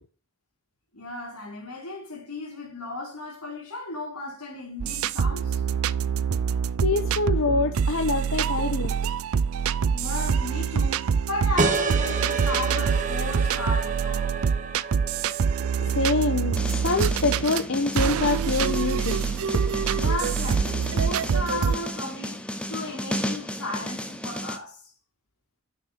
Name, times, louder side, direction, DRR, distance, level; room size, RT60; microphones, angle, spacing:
voice 1, 0.9-5.6 9.9-14.3 19.9-24.9, left 2 dB, 90° left, 4.0 m, -35 dB
flutey loops, 4.8-17.6 17.9-21.8, right 6 dB, 75° right, 0.4 m, -25 dB
voice 2, 6.8-9.0 15.8-19.8, left 3 dB, 60° left, 0.9 m, -26 dB
sound 1, 11.6-16.8, right 4 dB, 35° right, 0.9 m, -29 dB
sound 2, 16.5-24.6, equal, 5° left, 0.9 m, -33 dB
6.9 x 6.4 x 5.7 m
head